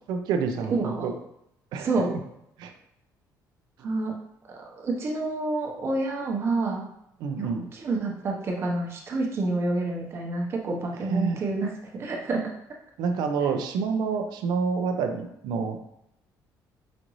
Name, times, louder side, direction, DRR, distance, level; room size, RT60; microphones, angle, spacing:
voice 1, 0.1-1.1 1.7-1.9 2.6-2.7 7.2-7.7 11.0-11.4 13.0-15.9, right 5 dB, 80° right, 6 dB, 0.5 m, -28 dB
voice 2, 0.7-1.1 1.8-2.1 3.8-4.1 4.5-6.9 7.4-12.5, right 2 dB, 35° right, -1 dB, 0.8 m, -28 dB
5.1 x 2.6 x 3.0 m, 0.79 s
cardioid pair, 155°, 7 cm